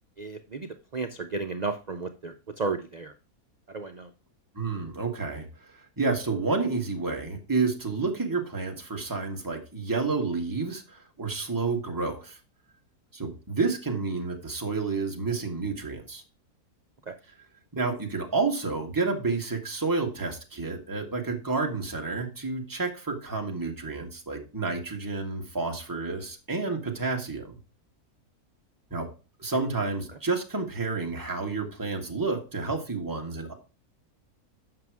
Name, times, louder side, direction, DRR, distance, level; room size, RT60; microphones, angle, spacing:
voice 1, 0.2-3.1 3.7-4.1 17.1-17.2, right 4 dB, 85° right, 6 dB, 0.3 m, -33 dB
voice 2, 4.5-12.4 13.1-16.2 17.7-27.6 28.9-29.1 29.4-33.5, right 4 dB, 15° right, 1 dB, 1.5 m, -30 dB
7.7 x 5.8 x 4.7 m, 0.32 s
omnidirectional pair, 1.6 m